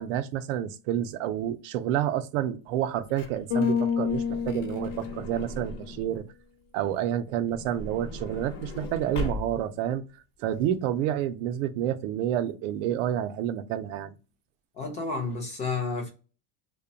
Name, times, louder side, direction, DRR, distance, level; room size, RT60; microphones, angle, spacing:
voice 1, 0.0-6.3 6.7-10.0 10.4-14.1, right 11 dB, 85° right, 0.5 m, -29 dB
Truck / Door, 2.7-6.3 7.3-9.8 10.5-10.6 10.8-11.0, left 1 dB, 50° left, 0.8 m, -39 dB
Bass guitar, 3.5-5.8, left 6 dB, 85° left, 0.8 m, -28 dB
voice 2, 14.7-16.1, left 3 dB, 20° left, 0.4 m, -31 dB
2.8 x 2.1 x 2.5 m
cardioid pair, 160°, 37 cm